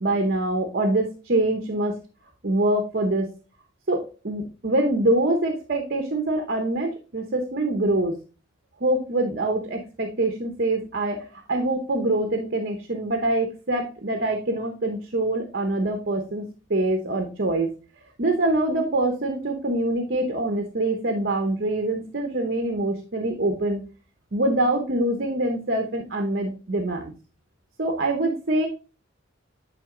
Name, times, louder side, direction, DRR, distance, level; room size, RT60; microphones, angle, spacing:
voice 1, 0.0-2.0 2.4-3.3 3.9-8.2 8.8-17.7 18.2-23.8 24.3-27.1 27.8-28.7, right 1 dB, 50° right, 5 dB, 0.9 m, -24 dB
9.1 x 3.6 x 3.7 m, 0.34 s
head